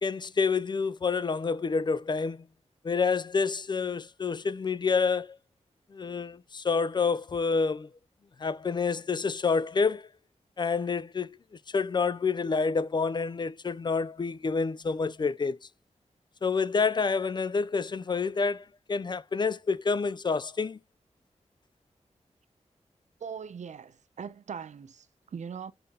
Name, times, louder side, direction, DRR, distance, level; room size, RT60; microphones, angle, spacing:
voice 1, 0.0-2.5 2.8-5.4 5.9-7.9 8.4-10.1 10.6-11.4 11.7-15.6 16.4-20.8, left 5 dB, 40° left, 0.3 m, -28 dB
voice 2, 23.2-25.7, right 6 dB, 75° right, 0.7 m, -40 dB
5.7 x 3.5 x 5.5 m
wide cardioid pair, 115°, 12 cm